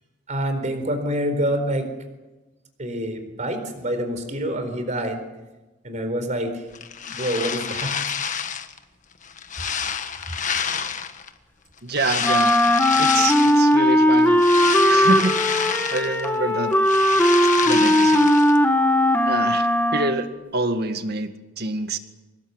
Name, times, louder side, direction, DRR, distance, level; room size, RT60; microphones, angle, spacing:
voice 1, 0.3-1.9 2.8-5.2 5.8-6.5 7.0-8.0, equal, 40° right, 8 dB, 4.3 m, -26 dB
sound 1, 6.7-8.8 9.2-11.3 11.9-13.7 14.1-16.4 16.6-18.6, left 7 dB, 40° left, 1.5 m, -28 dB
voice 2, 11.8-12.6 13.0-14.4 14.9-15.4 15.9-16.8 17.6-18.3 19.3-22.0, right 3 dB, 55° right, 8 dB, 2.0 m, -26 dB
Wind instrument woodwind instrument, 12.2-20.3, left 1 dB, 10° left, 1.8 m, -18 dB
25.0 x 20.5 x 8.1 m, 1.1 s
head